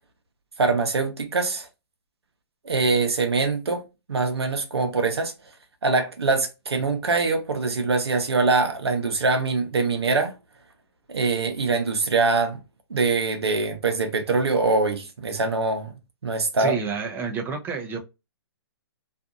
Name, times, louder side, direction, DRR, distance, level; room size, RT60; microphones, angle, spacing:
voice 1, 0.6-1.7 2.6-5.3 5.8-10.4 11.1-12.6 12.9-15.9 16.2-16.8, right 3 dB, 85° right, 0.7 m, -23 dB
voice 2, 16.6-18.0, right 5 dB, 15° right, 0.5 m, -29 dB
2.6 x 2.3 x 2.4 m
hypercardioid pair, 130°, 13 cm